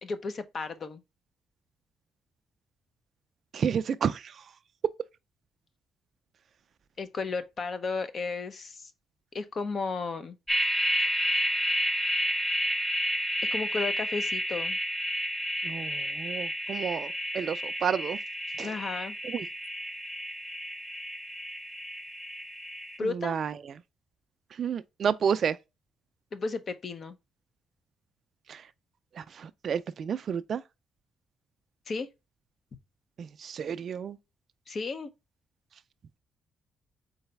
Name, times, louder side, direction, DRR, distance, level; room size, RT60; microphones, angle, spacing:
voice 1, 0.0-1.0 7.0-8.9 9.3-10.4 13.5-14.8 18.6-19.2 23.0-23.4 26.3-27.2 31.9-32.1 34.7-35.1, left 4 dB, 45° left, 0.7 m, -33 dB
voice 2, 3.5-4.4 15.6-18.2 18.6-18.7 19.2-19.5 23.0-23.5 24.5-25.6 28.5-28.6 29.1-30.6 33.2-34.2, right 7 dB, 55° right, 0.3 m, -31 dB
sound 1, 10.5-23.0, equal, ahead, 0.7 m, -31 dB
4.0 x 3.9 x 3.3 m
cardioid pair, 90°, 0 cm